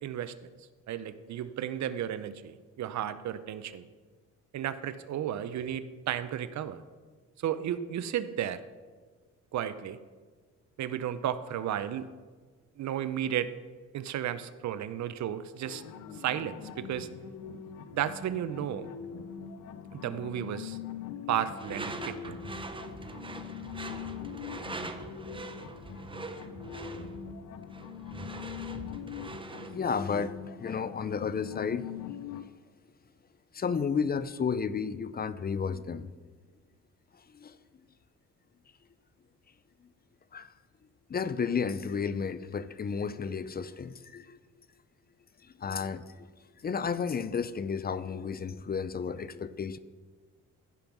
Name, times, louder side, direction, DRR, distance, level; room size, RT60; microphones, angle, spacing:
voice 1, 0.0-0.3 0.9-3.8 4.5-6.8 7.4-8.6 9.5-10.0 10.8-12.1 12.8-13.5 13.9-15.8 16.1-17.1 17.9-18.9 19.9-20.8 21.3-22.4, right 10 dB, 65° right, 13 dB, 0.7 m, -33 dB
sound 1, 15.7-32.4, left 8 dB, 80° left, 0.7 m, -42 dB
Door / Screech, 21.6-29.8, right 3 dB, 15° right, 0.8 m, -42 dB
voice 2, 29.7-30.3 30.6-31.8 33.5-36.1 37.3-37.6 40.3-40.5 41.1-44.4 45.6-46.1 46.6-49.8, left 6 dB, 30° left, 15 dB, 0.5 m, -32 dB
15.0 x 5.3 x 6.0 m, 1.4 s
cardioid pair, 90°, 30 cm